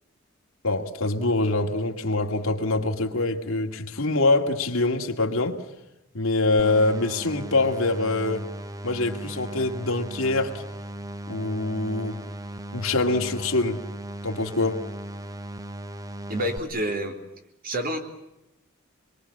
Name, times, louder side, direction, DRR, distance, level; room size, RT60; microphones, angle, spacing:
voice 1, 0.6-5.6 6.1-8.5 8.8-10.6 11.3-12.2 12.7-13.8 14.2-14.8, left 2 dB, 75° left, 2.3 m, -24 dB
sound 1, 6.6-16.6, right 1 dB, 15° right, 0.9 m, -37 dB
voice 2, 16.3-17.1 17.6-18.0, equal, 45° right, 3.6 m, -28 dB
25.5 x 22.5 x 8.6 m
head